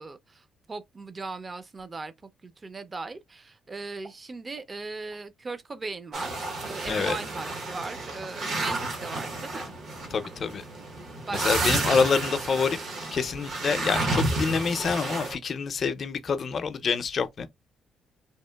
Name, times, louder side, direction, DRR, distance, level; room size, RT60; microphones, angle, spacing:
voice 1, 0.0-9.7 11.3-11.8, right 3 dB, 30° right, 0.4 m, -38 dB
sound 1, 4.0-4.2 4.5-4.7 5.1-5.2 5.5-5.6 6.2-6.3 6.8-6.9 7.5-7.7 8.2-8.4 8.7-8.9 9.4-9.6 10.2-10.7 11.2-11.3 11.7-11.9 12.3-12.4, right 2 dB, 85° right, 1.3 m, -50 dB
sound 2, 6.1-15.3, right 2 dB, 70° right, 0.8 m, -31 dB
voice 2, 10.1-10.6 11.3-12.8 13.1-17.5, left 5 dB, 50° left, 0.4 m, -27 dB
2.8 x 2.4 x 2.2 m
cardioid pair, 90°, 0 cm